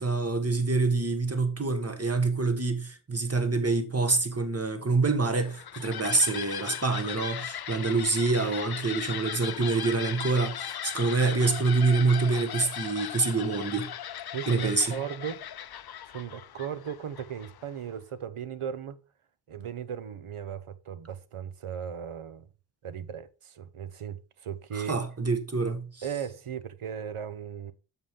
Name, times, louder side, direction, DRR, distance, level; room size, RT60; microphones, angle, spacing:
voice 1, 0.0-13.9 14.5-15.0 24.7-26.0, right 3 dB, 30° right, 1.4 m, -26 dB
sound 1, 5.3-17.8, left 10 dB, 50° left, 0.5 m, -38 dB
voice 2, 14.3-15.4 16.1-19.0 19.5-22.5 22.8-25.0 26.0-27.7, right 8 dB, 90° right, 0.8 m, -37 dB
7.6 x 7.0 x 3.7 m
wide cardioid pair, 55°, 49 cm